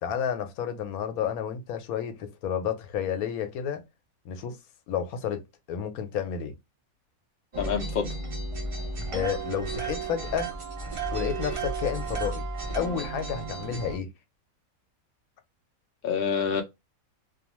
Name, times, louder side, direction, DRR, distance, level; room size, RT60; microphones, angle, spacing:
voice 1, 0.0-3.8 4.2-4.6 4.9-6.5 9.1-10.5 11.1-12.4 12.8-14.1, left 8 dB, 85° left, 1.1 m, -31 dB
sound 1, 7.5-14.0, right 3 dB, 55° right, 0.3 m, -33 dB
voice 2, 7.6-8.2 16.0-16.6, left 6 dB, 70° left, 0.5 m, -27 dB
2.5 x 2.4 x 2.9 m
omnidirectional pair, 1.5 m